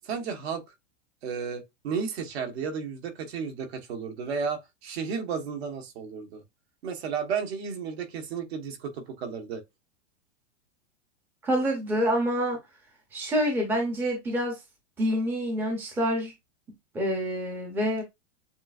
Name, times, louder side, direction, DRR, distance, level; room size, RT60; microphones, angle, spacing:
voice 1, 0.0-0.6 1.2-6.4 6.8-9.6, right 6 dB, 60° right, 1.4 m, -33 dB
voice 2, 11.4-12.6 13.1-14.6 15.0-16.3 16.9-18.0, equal, 5° right, 0.7 m, -27 dB
7.2 x 2.5 x 2.5 m
supercardioid pair, 165°, 37 cm